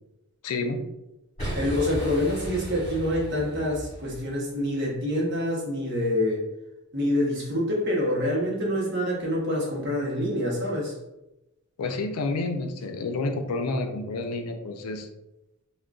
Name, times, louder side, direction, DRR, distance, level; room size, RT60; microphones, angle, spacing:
voice 1, 0.4-0.8 11.8-15.1, left 3 dB, 90° left, 6 dB, 0.4 m, -29 dB
Boom, 1.4-4.4, equal, 30° left, 1.4 m, -35 dB
voice 2, 1.5-6.4 6.9-11.0, left 1 dB, 50° right, -3 dB, 0.8 m, -26 dB
3.7 x 2.1 x 2.3 m, 0.96 s
head